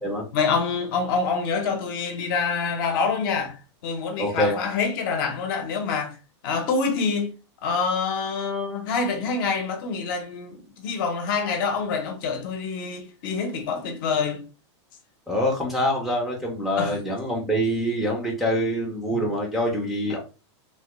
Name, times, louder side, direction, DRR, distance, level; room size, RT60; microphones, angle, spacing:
voice 1, 0.3-3.5 3.8-6.1 6.4-7.3 7.6-14.4 16.8-16.9 19.1-19.2, left 5 dB, 45° left, 0.7 m, -26 dB
voice 2, 4.2-4.6 15.3-20.2, equal, ahead, 0.5 m, -25 dB
3.1 x 2.2 x 3.0 m
supercardioid pair, 160°, 15 cm